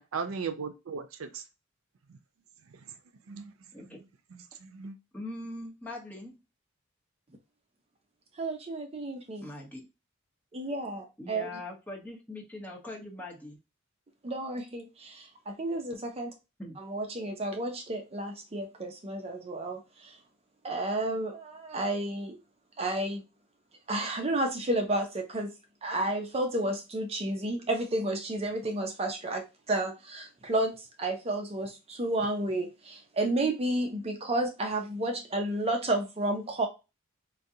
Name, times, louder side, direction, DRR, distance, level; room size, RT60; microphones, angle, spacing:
voice 1, 0.0-1.4 2.1-2.2 2.7-3.0 3.3-4.0 4.3-5.0, right 5 dB, 80° right, 0.5 m, -38 dB
voice 2, 5.1-6.4 9.4-9.9 11.2-13.6 16.6-16.8, left 2 dB, 10° left, 1.0 m, -41 dB
voice 3, 8.4-9.5 10.5-11.5 14.2-16.3 16.8-20.1 20.6-22.4 22.8-23.2 23.9-25.5 25.8-36.7, right 1 dB, 30° right, 0.6 m, -31 dB
3.8 x 2.2 x 2.7 m
head